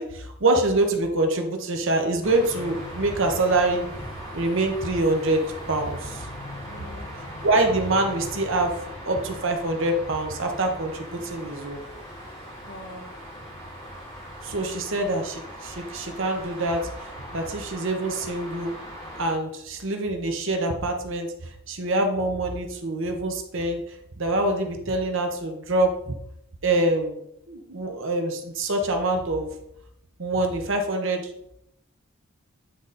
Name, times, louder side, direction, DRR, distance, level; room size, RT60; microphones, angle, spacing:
voice 1, 0.0-3.8 4.3-5.4 5.7-6.3 7.4-8.7 9.1-11.8 14.4-16.8 17.3-18.7 19.2-21.3 21.7-23.8 24.2-26.1 26.6-27.2 27.5-29.5 30.2-31.2, right 2 dB, 65° right, 3 dB, 1.0 m, -25 dB
sound 1, 2.2-19.3, equal, 30° left, 2.3 m, -39 dB
voice 2, 6.7-7.5 12.6-13.6 14.8-15.1, left 1 dB, 60° left, -1 dB, 2.0 m, -45 dB
9.3 x 4.0 x 4.1 m, 0.77 s
head